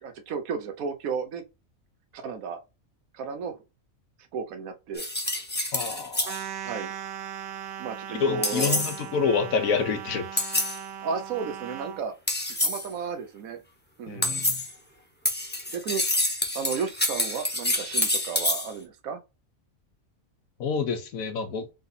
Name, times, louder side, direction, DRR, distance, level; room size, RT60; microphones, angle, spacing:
voice 1, 0.0-1.4 2.1-2.6 3.1-3.5 4.3-5.1 6.6-6.9 7.8-8.8 11.0-12.1 12.6-13.6 14.0-14.4 15.7-16.0 16.5-19.2, right 5 dB, 90° right, 1.2 m, -33 dB
sound 1, 5.0-6.4 8.4-9.0 10.4-10.8 12.3-12.9 14.2-14.7 15.3-18.7, left 1 dB, 10° left, 0.6 m, -27 dB
voice 2, 5.7-6.4 8.2-10.4 14.1-14.6 20.6-21.7, left 6 dB, 90° left, 1.2 m, -28 dB
sound 2, 6.2-12.0, right 9 dB, 65° right, 0.8 m, -38 dB
4.0 x 2.7 x 4.0 m
omnidirectional pair, 1.4 m